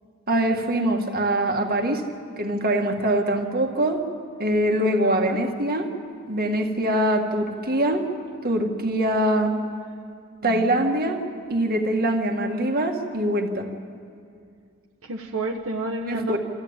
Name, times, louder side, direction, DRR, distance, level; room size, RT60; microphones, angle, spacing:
voice 1, 0.3-2.0 2.4-4.0 4.4-5.9 6.3-8.1 8.4-9.6 10.4-11.2 11.5-13.7 16.1-16.4, right 1 dB, 45° right, 3 dB, 1.8 m, -23 dB
voice 2, 5.0-5.4 10.4-10.9 15.0-16.4, right 2 dB, 70° right, 1 dB, 1.3 m, -30 dB
25.5 x 14.0 x 8.8 m, 2.3 s
head